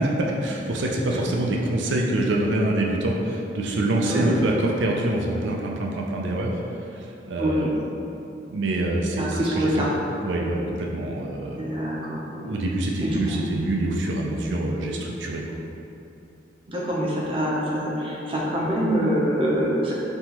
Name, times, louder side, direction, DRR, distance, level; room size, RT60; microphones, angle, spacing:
voice 1, 0.0-6.6 6.9-7.8 8.5-9.9 10.2-11.6 12.3-15.4, right 1 dB, 75° right, -1 dB, 0.5 m, -25 dB
voice 2, 7.4-7.7 9.2-9.9 11.6-12.3 13.0-13.4 16.7-20.0, equal, 30° right, -5 dB, 0.7 m, -25 dB
5.5 x 2.9 x 2.9 m, 2.8 s
head